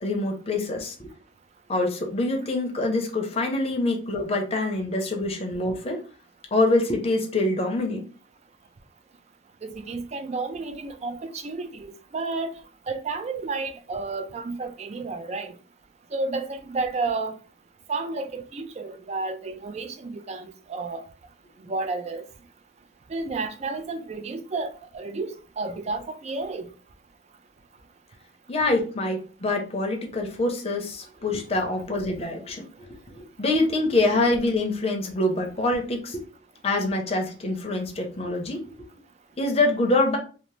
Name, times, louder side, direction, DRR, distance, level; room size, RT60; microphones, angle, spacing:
voice 1, 0.0-1.1 1.7-6.0 6.5-8.0 28.5-32.6 33.2-36.2 36.6-38.6 39.4-40.2, left 2 dB, 30° left, 0.6 m, -25 dB
voice 2, 9.6-12.5 12.9-15.5 16.1-17.4 17.9-21.0 21.6-22.3 23.1-26.7, right 3 dB, 35° right, 0.3 m, -31 dB
2.7 x 2.0 x 3.1 m
head